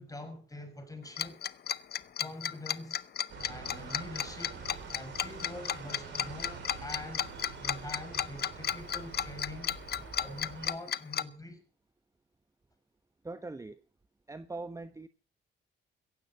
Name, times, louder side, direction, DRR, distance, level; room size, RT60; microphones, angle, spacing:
voice 1, 0.0-1.4 2.2-3.0 3.5-4.6 4.9-7.3 7.6-9.8 10.2-11.6, left 2 dB, 15° left, 6.1 m, -44 dB
Tick-tock, 1.2-11.2, left 9 dB, 55° left, 0.8 m, -33 dB
sound 1, 3.3-10.7, right 5 dB, 65° right, 5.6 m, -46 dB
voice 2, 13.2-13.8 14.3-15.1, right 2 dB, 15° right, 1.1 m, -41 dB
16.5 x 15.0 x 4.2 m
cardioid pair, 90°, 20 cm